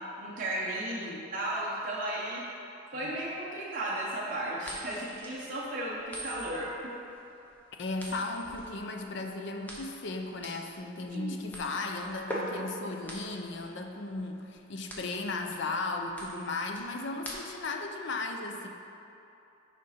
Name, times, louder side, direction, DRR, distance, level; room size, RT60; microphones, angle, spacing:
voice 1, 0.2-2.5 2.9-7.0 11.1-11.3, right 1 dB, 40° right, -6 dB, 0.8 m, -35 dB
voice 2, 0.9-1.2 3.0-3.2 7.8-18.7, left 3 dB, 60° left, 3 dB, 0.5 m, -36 dB
sound 1, 4.6-17.8, equal, 10° left, 0.8 m, -43 dB
6.5 x 5.0 x 4.2 m, 2.8 s
head